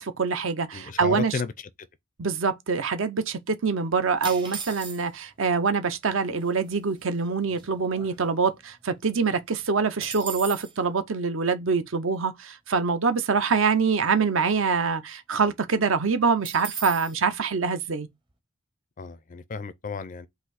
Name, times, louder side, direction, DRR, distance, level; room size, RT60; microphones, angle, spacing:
voice 1, 0.0-1.4 2.2-18.1, right 5 dB, 65° right, 0.6 m, -25 dB
voice 2, 0.7-1.5 19.0-20.3, left 4 dB, 35° left, 0.4 m, -33 dB
sound 1, 4.2-5.3 6.1-6.2 6.4-6.7 7.2-8.6 9.0-9.1 9.4-10.8 16.4-17.2, right 5 dB, 20° right, 0.7 m, -37 dB
4.1 x 2.7 x 3.9 m
head